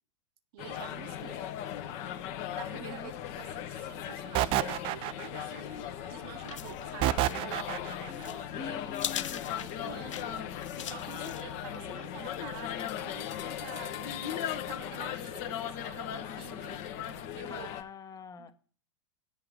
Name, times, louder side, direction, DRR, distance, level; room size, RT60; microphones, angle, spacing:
voice 1, 0.5-1.4 2.5-3.1 3.4-7.8 8.1-8.9 9.5-10.5 10.8-17.7 18.4-18.5, right 12 dB, 50° right, 1.0 m, -48 dB
sound 1, 0.6-17.8, left 10 dB, 45° left, 1.2 m, -38 dB
voice 2, 1.1-1.4 2.8-3.1 8.1-9.6 17.5-18.5, left 6 dB, 20° left, 1.1 m, -45 dB
sound 2, 4.3-5.6 7.0-8.1, right 15 dB, 35° right, 0.4 m, -29 dB
sound 3, 5.7-12.0, left 10 dB, 70° left, 0.7 m, -43 dB
8.2 x 6.8 x 6.6 m
hypercardioid pair, 100°, 16 cm